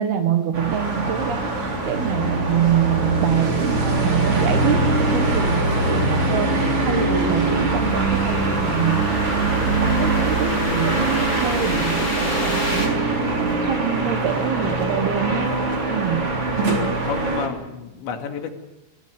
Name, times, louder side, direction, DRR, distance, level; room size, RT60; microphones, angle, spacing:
voice 1, 0.0-15.6 15.9-16.3, right 10 dB, 65° right, 7 dB, 2.9 m, -25 dB
sound 1, 0.5-17.5, right 2 dB, 30° right, 4.0 m, -22 dB
sound 2, 2.9-15.0, right 2 dB, 85° right, 7.1 m, -38 dB
sound 3, 4.5-12.9, left 2 dB, 35° left, 7.7 m, -34 dB
voice 2, 17.0-18.5, left 7 dB, 70° left, 4 dB, 4.4 m, -31 dB
26.5 x 19.0 x 6.9 m, 0.97 s
omnidirectional pair, 5.5 m